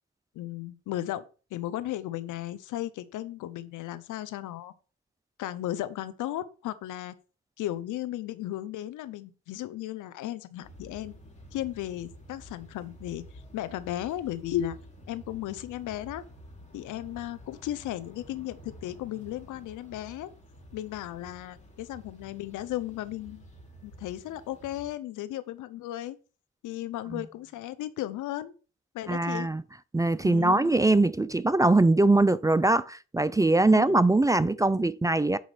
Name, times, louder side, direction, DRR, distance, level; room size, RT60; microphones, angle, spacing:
voice 1, 0.3-1.2 1.5-4.7 5.4-7.1 7.6-11.1 11.5-13.2 13.5-14.8 15.1-16.2 16.7-20.3 20.7-23.5 23.8-26.2 26.6-28.5 28.9-29.5 30.2-30.7 33.7-34.0, left 13 dB, 85° left, 0.8 m, -35 dB
sound 1, 10.6-24.9, equal, 25° left, 3.3 m, -50 dB
voice 2, 29.1-29.6 29.9-35.4, right 2 dB, 10° right, 0.4 m, -22 dB
7.9 x 5.1 x 5.0 m
cardioid pair, 90°, 30 cm